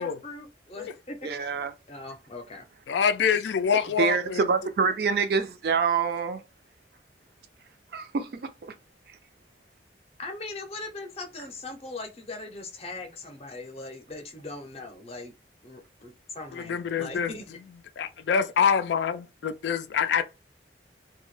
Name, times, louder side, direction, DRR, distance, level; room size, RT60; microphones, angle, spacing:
voice 1, 0.0-1.3 1.9-2.7 10.2-15.3 15.6-17.5, left 2 dB, 35° left, 0.6 m, -40 dB
voice 2, 1.2-1.7 4.0-6.4 7.9-8.5, right 5 dB, 60° right, 0.4 m, -26 dB
voice 3, 2.9-4.5 16.5-17.3 18.0-20.2, left 7 dB, 80° left, 0.3 m, -25 dB
2.2 x 2.0 x 3.0 m
head